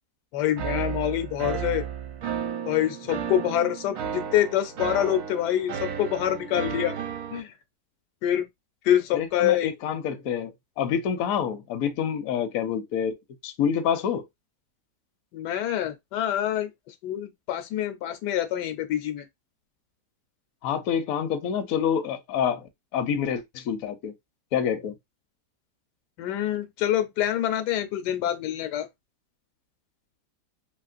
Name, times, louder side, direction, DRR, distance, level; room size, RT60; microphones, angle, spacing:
voice 1, 0.3-1.8 2.7-6.9 7.3-7.5 8.2-8.5 8.8-9.7 15.3-19.2 26.2-28.9, left 11 dB, 85° left, 1.2 m, -26 dB
sound 1, 0.6-7.4, right 8 dB, 70° right, 1.1 m, -33 dB
voice 2, 9.1-13.2 13.4-14.2 20.6-24.1 24.5-24.9, left 8 dB, 70° left, 0.9 m, -27 dB
2.9 x 2.9 x 2.4 m
omnidirectional pair, 1.8 m